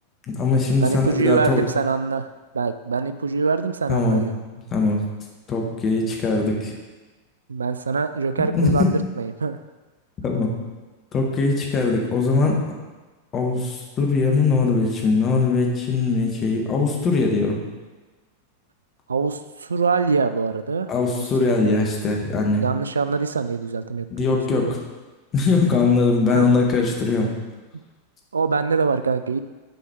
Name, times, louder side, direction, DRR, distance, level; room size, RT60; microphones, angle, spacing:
voice 1, 0.3-1.6 3.9-4.2 4.7-5.0 5.5-6.7 8.4-8.9 10.2-10.5 11.1-12.6 13.3-17.6 20.9-22.6 24.1-24.8 25.3-27.3, left 3 dB, 30° left, 0 dB, 1.4 m, -21 dB
voice 2, 0.8-2.3 2.5-4.3 7.5-9.6 19.1-21.6 22.6-24.8 26.3-26.5 28.3-29.4, right 5 dB, 70° right, 11 dB, 0.3 m, -24 dB
7.8 x 4.8 x 4.4 m, 1.2 s
figure-of-eight pair, 90°, 0 cm